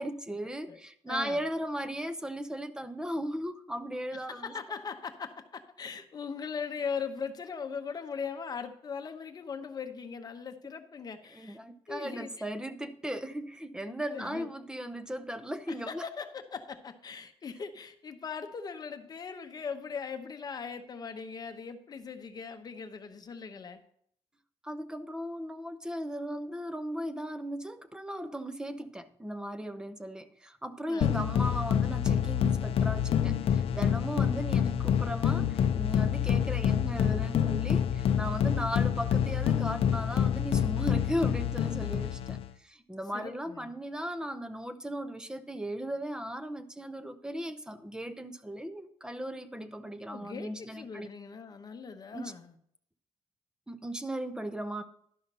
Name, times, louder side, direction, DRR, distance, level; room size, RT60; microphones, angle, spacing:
voice 1, 0.0-4.5 11.3-16.0 24.6-51.1 52.1-52.3 53.7-54.8, equal, 5° right, 0.7 m, -37 dB
voice 2, 1.1-1.4 4.1-11.6 11.9-12.4 13.9-14.5 15.7-23.8 30.9-31.1 43.1-43.7 50.1-52.5, left 6 dB, 40° left, 0.8 m, -40 dB
sound 1, 31.0-42.5, left 9 dB, 65° left, 0.5 m, -27 dB
12.0 x 5.7 x 5.3 m
cardioid pair, 130°, 10 cm